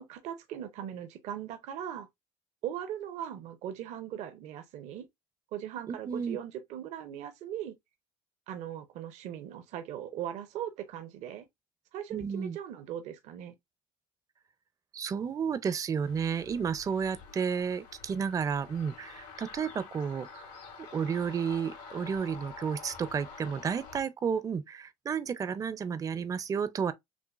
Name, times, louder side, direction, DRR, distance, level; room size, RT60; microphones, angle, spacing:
voice 1, 0.0-2.1 2.6-5.1 5.5-7.8 8.5-11.5 11.9-13.5, right 10 dB, 70° right, 0.6 m, -39 dB
voice 2, 5.9-6.4 12.1-12.6 14.9-20.5 20.9-26.9, right 6 dB, 30° right, 0.4 m, -32 dB
sound 1, 16.0-24.0, left 5 dB, 80° left, 1.8 m, -48 dB
6.0 x 2.1 x 2.4 m
supercardioid pair, 85°, 12 cm